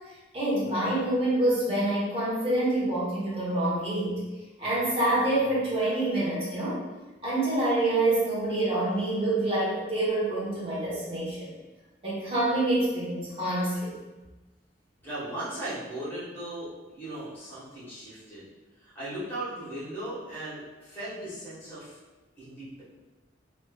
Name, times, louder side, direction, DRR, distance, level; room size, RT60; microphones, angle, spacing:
voice 1, 0.3-4.2 4.6-6.8 7.2-11.5 12.0-13.9, right 1 dB, 30° right, -8 dB, 1.1 m, -26 dB
voice 2, 15.0-18.4 18.8-22.0 22.4-22.8, right 1 dB, 10° left, -11 dB, 1.5 m, -37 dB
3.2 x 3.0 x 2.4 m, 1.1 s
head